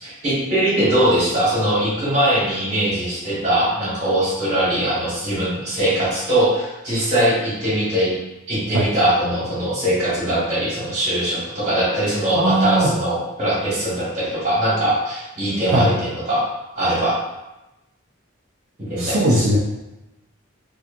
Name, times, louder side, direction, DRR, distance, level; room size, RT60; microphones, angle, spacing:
voice 1, 0.0-8.1 8.5-16.4 16.7-17.1 18.9-19.4, right 1 dB, 35° right, -10 dB, 1.4 m, -21 dB
voice 2, 12.4-12.9 15.7-15.9 19.0-19.6, right 1 dB, 70° right, -6 dB, 0.4 m, -18 dB
2.8 x 2.2 x 2.4 m, 0.98 s
head